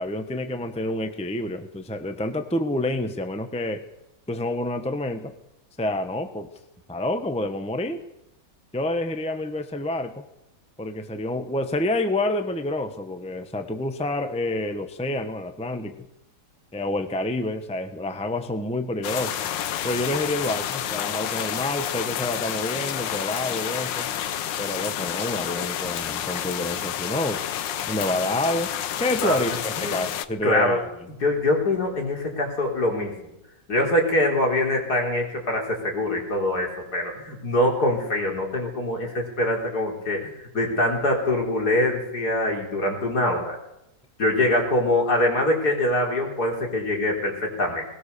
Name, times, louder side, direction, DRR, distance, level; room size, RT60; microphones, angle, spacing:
voice 1, 0.0-3.8 4.3-5.3 5.8-6.5 6.9-8.0 8.7-10.2 10.8-16.1 16.7-19.4 19.8-24.1 24.6-27.4 27.9-28.7 29.0-30.8, left 1 dB, 5° left, 8 dB, 1.2 m, -28 dB
sound 1, 19.0-30.3, left 10 dB, 85° left, 1.6 m, -29 dB
voice 2, 30.4-30.8 31.2-33.1 33.7-43.6 44.2-47.8, left 1 dB, 60° left, 1 dB, 4.7 m, -24 dB
20.0 x 20.0 x 7.0 m, 0.85 s
omnidirectional pair, 1.9 m